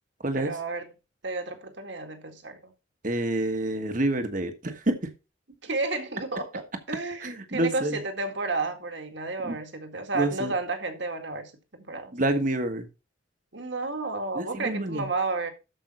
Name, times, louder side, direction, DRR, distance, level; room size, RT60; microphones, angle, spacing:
voice 1, 0.4-0.9 1.2-2.7 5.6-12.1 13.5-15.5, right 3 dB, 65° right, 2.0 m, -32 dB
voice 2, 3.0-5.1 7.2-8.0 9.4-9.5 10.1-10.5 12.1-12.9 14.3-15.1, right 1 dB, 45° right, 1.4 m, -28 dB
13.0 x 5.5 x 4.3 m
head